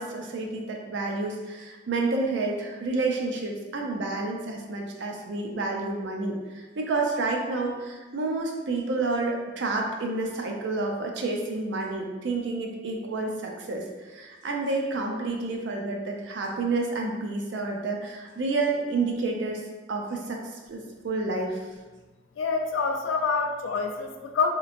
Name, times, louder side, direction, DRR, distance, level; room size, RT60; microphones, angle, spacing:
voice 1, 0.0-19.6 19.9-21.6, right 3 dB, 70° right, 1 dB, 0.4 m, -29 dB
voice 2, 22.4-24.5, left 4 dB, 85° left, 4 dB, 0.4 m, -26 dB
2.9 x 2.5 x 2.5 m, 1.3 s
head